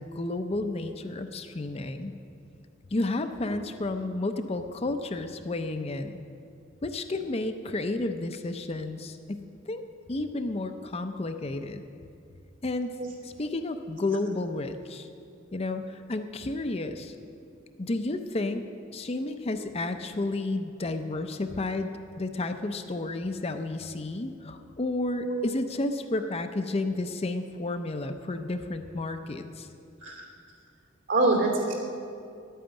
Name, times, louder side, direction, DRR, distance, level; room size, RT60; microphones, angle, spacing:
voice 1, 0.0-2.1 2.9-6.2 6.8-11.8 12.6-12.9 13.2-15.1 15.5-17.1 17.8-18.6 18.9-21.9 22.2-29.7, left 2 dB, 30° left, 7 dB, 0.6 m, -31 dB
voice 2, 25.1-25.5 30.0-30.2 31.1-31.8, right 2 dB, 65° right, 0 dB, 2.7 m, -25 dB
10.5 x 9.1 x 8.9 m, 2.5 s
head